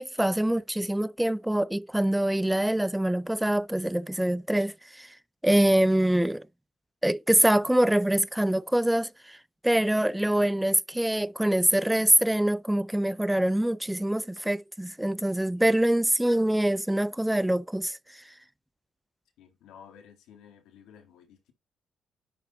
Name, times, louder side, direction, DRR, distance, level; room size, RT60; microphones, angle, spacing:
voice 1, 0.0-5.2 5.4-6.5 7.0-18.3, right 1 dB, 5° right, 0.3 m, -25 dB
voice 2, 19.4-21.5, left 8 dB, 90° left, 2.0 m, -53 dB
11.0 x 3.6 x 4.0 m
cardioid pair, 90°, 0 cm